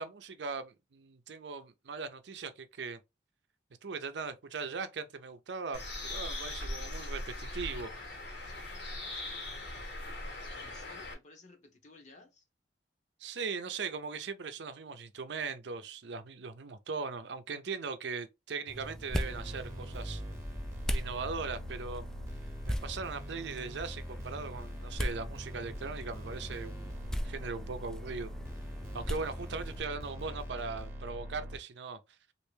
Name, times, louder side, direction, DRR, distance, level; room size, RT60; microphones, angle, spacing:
voice 1, 0.0-3.0 3.8-7.9 13.2-20.2 20.9-22.1 22.6-28.3 28.9-32.0, right 4 dB, 75° right, 0.5 m, -39 dB
Bird, 5.7-11.1, left 2 dB, 70° left, 1.3 m, -40 dB
voice 2, 10.6-12.4 30.2-30.5, left 2 dB, 40° left, 0.8 m, -56 dB
sound 1, 18.7-29.8, equal, 5° left, 0.3 m, -40 dB
sound 2, 19.2-31.6, equal, 15° right, 0.8 m, -42 dB
3.2 x 2.5 x 3.2 m
head